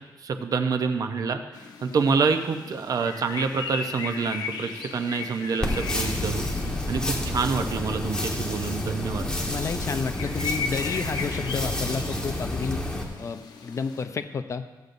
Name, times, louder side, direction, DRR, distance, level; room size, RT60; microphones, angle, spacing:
voice 1, 0.2-1.4 1.8-6.4 6.9-9.3, right 5 dB, 55° right, 7 dB, 0.7 m, -27 dB
sound 1, 1.5-14.1, left 5 dB, 70° left, 0.9 m, -38 dB
sound 2, 5.6-13.0, left 1 dB, 10° left, 1.3 m, -29 dB
voice 2, 9.5-12.8 13.2-14.6, left 5 dB, 45° left, 9 dB, 0.6 m, -31 dB
14.5 x 8.1 x 2.6 m, 1.2 s
cardioid pair, 115°, 7 cm